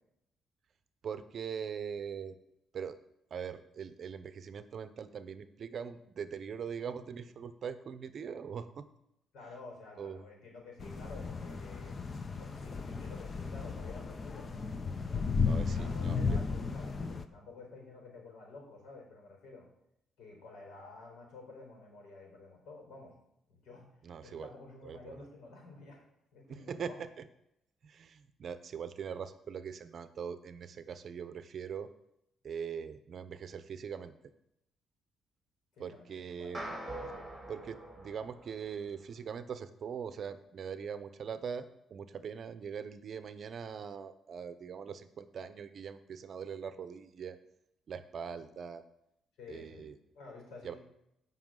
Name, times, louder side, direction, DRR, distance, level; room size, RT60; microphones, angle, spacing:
voice 1, 1.0-2.4 2.7-3.0 3.3-8.9 10.0-10.3 15.4-16.4 24.0-24.5 24.8-25.2 26.5-27.3 27.8-31.9 32.4-34.1 35.8-36.7 37.5-47.4 47.9-48.8 49.5-49.9 50.6-50.7, right 7 dB, 50° right, 11 dB, 0.7 m, -42 dB
voice 2, 9.3-12.0 12.4-14.7 15.5-19.7 20.2-23.1 23.5-26.1 26.3-27.0 35.7-36.6 49.4-49.9 50.1-50.8, left 3 dB, 85° left, 0 dB, 4.4 m, -51 dB
sound 1, 10.8-17.2, left 5 dB, 30° left, 0.7 m, -34 dB
sound 2, 36.5-39.0, right 1 dB, 10° right, 3.3 m, -44 dB
16.5 x 5.6 x 3.9 m, 0.82 s
cardioid pair, 125°, 0 cm